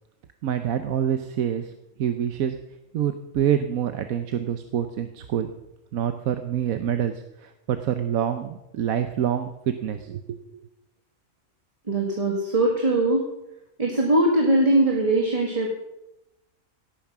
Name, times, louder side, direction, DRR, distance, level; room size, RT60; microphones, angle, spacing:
voice 1, 0.4-1.7 2.0-2.6 2.9-5.5 5.9-7.1 7.4-10.4, right 9 dB, 80° right, 8 dB, 1.2 m, -26 dB
voice 2, 11.9-13.2 13.8-15.8, right 1 dB, 25° right, 1 dB, 1.9 m, -21 dB
17.5 x 9.1 x 6.0 m, 0.90 s
omnidirectional pair, 1.5 m